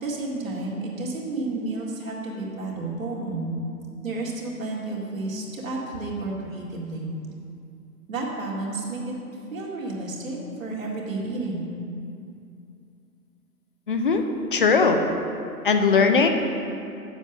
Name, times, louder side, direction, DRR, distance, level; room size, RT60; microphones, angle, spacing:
voice 1, 0.0-3.5 4.0-7.1 8.1-9.1 9.5-11.7, right 2 dB, 55° right, -3 dB, 2.2 m, -31 dB
voice 2, 13.9-14.2 14.5-15.0 15.6-16.3, left 5 dB, 35° left, 5 dB, 0.6 m, -19 dB
7.3 x 6.6 x 8.0 m, 2.6 s
figure-of-eight pair, 130°, 47 cm